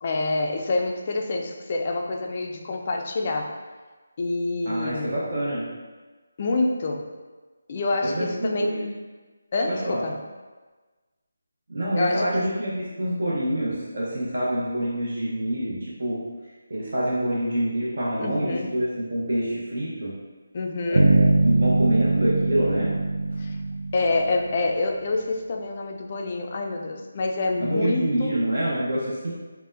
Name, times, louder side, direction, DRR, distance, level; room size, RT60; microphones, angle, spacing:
voice 1, 0.0-3.5 4.2-5.1 6.4-7.1 7.7-8.7 9.5-10.1 12.0-12.5 18.2-18.8 20.5-21.2 23.4-23.6 23.9-28.4, left 2 dB, 35° left, 2 dB, 0.3 m, -27 dB
voice 2, 4.6-5.6 8.0-8.9 9.7-10.0 11.7-20.1 20.9-22.9 27.6-29.3, right 1 dB, 60° right, -7 dB, 0.7 m, -26 dB
sound 1, 20.9-24.9, right 2 dB, 80° right, 0.3 m, -22 dB
4.0 x 2.1 x 2.5 m, 1.3 s
figure-of-eight pair, 160°, 0 cm